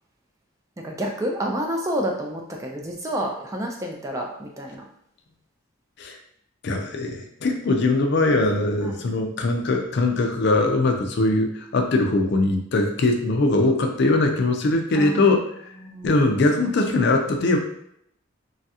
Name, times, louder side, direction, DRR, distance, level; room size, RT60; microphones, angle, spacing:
voice 1, 0.8-4.8 8.8-8.9 15.0-15.3 15.8-16.1, equal, 15° right, 0 dB, 0.3 m, -29 dB
voice 2, 6.6-15.7 16.0-17.6, left 2 dB, 55° left, 3 dB, 0.4 m, -21 dB
3.1 x 2.4 x 2.8 m, 0.73 s
head